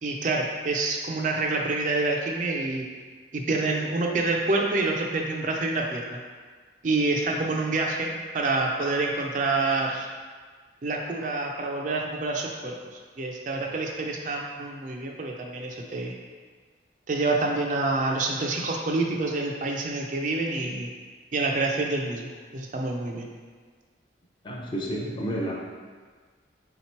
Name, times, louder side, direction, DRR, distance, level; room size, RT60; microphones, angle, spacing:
voice 1, 0.0-2.9 3.3-6.0 6.8-10.1 10.8-16.1 17.1-20.9 21.3-23.3, right 3 dB, 45° right, 0 dB, 0.4 m, -27 dB
voice 2, 24.4-25.5, right 1 dB, 25° left, -3 dB, 0.5 m, -30 dB
3.6 x 2.9 x 4.3 m, 1.5 s
head